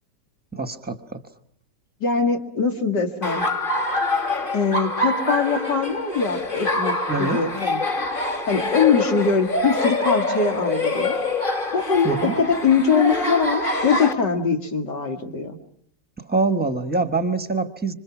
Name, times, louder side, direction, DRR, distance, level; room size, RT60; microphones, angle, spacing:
voice 1, 0.5-1.2 7.1-7.4 12.0-12.4 16.2-17.9, right 3 dB, 5° right, 8 dB, 1.1 m, -24 dB
voice 2, 2.0-3.4 4.5-6.9 7.2-7.8 8.5-11.2 11.7-15.6, left 5 dB, 80° left, 3 dB, 2.8 m, -22 dB
Laughter, 3.2-14.1, left 2 dB, 30° left, 2.0 m, -25 dB
27.0 x 26.0 x 6.0 m, 0.64 s
omnidirectional pair, 1.8 m